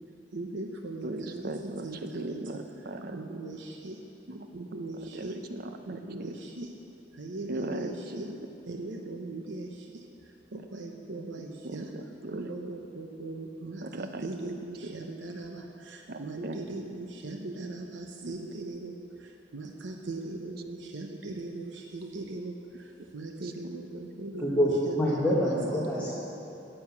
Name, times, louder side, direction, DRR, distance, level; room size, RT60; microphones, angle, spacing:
voice 1, 0.3-1.4 1.8-2.4 3.1-4.0 4.5-5.4 5.9-6.7 7.2-8.3 8.7-9.7 10.5-11.9 12.3-15.6 16.2-18.9 19.5-22.5 23.1-25.2 25.8-26.1, right 2 dB, 85° right, 2 dB, 0.8 m, -39 dB
voice 2, 1.0-3.2 4.3-4.5 5.1-5.8 6.2-6.4 7.5-8.4 11.2-11.3 11.6-12.5 13.8-14.9 16.1-16.6 18.2-18.4 23.4-23.8, right 2 dB, 55° right, 6 dB, 0.7 m, -38 dB
voice 3, 24.4-26.1, equal, 10° left, -8 dB, 1.3 m, -26 dB
9.5 x 8.7 x 7.3 m, 2.9 s
head